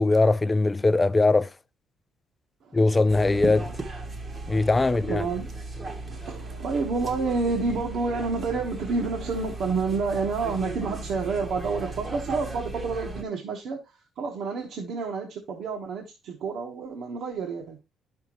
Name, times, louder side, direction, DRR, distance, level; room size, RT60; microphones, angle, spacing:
voice 1, 0.0-1.5 2.7-3.7 4.5-5.2, left 3 dB, 15° left, 0.3 m, -21 dB
voice 2, 2.6-3.0 4.7-5.5 6.1-13.8 14.2-17.8, right 4 dB, 65° right, 1.3 m, -29 dB
sound 1, 3.1-13.2, right 2 dB, 25° right, 1.0 m, -36 dB
10.5 x 5.8 x 3.0 m
cardioid pair, 155°, 0 cm